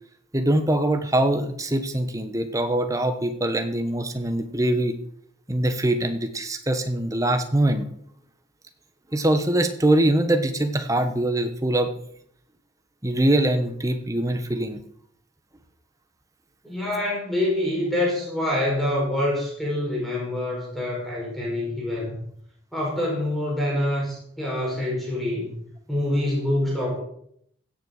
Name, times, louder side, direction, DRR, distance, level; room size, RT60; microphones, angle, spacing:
voice 1, 0.3-5.0 5.5-7.9 9.1-11.9 13.0-14.8, right 1 dB, 15° right, 7 dB, 1.2 m, -23 dB
voice 2, 16.6-22.2 22.7-25.6 25.9-27.0, left 1 dB, ahead, -4 dB, 4.9 m, -26 dB
16.0 x 6.9 x 6.6 m, 0.68 s
head